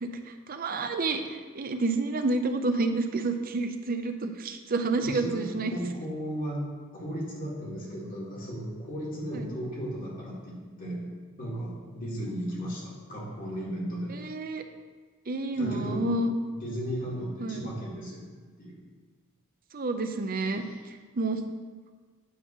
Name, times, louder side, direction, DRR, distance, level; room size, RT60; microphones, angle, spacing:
voice 1, 0.5-5.7 9.3-9.4 14.1-14.6 15.3-16.3 17.4-17.7 19.7-20.6 21.2-21.4, right 3 dB, 40° right, 7 dB, 0.6 m, -29 dB
voice 2, 5.0-6.6 6.9-11.1 11.4-14.1 15.6-16.1 16.5-18.8 20.5-20.9, equal, 40° left, -5 dB, 2.1 m, -35 dB
9.4 x 3.7 x 5.9 m, 1.4 s
head